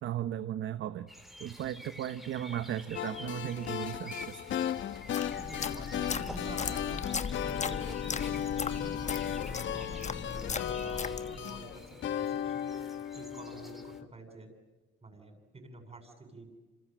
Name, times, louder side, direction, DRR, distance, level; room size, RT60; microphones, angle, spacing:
voice 1, 0.0-1.1 1.4-4.4, right 11 dB, 75° right, 12 dB, 1.0 m, -36 dB
sound 1, 1.1-14.0, equal, ahead, 3.0 m, -50 dB
sound 2, 2.9-14.0, left 9 dB, 70° left, 1.3 m, -36 dB
sound 3, 4.9-11.6, left 6 dB, 35° left, 1.2 m, -38 dB
voice 2, 5.4-7.1 7.4-8.4 8.7-12.8 13.1-14.5 15.0-16.5, right 2 dB, 30° right, 6 dB, 7.8 m, -48 dB
27.5 x 27.5 x 7.8 m, 1.2 s
cardioid pair, 90°, 20 cm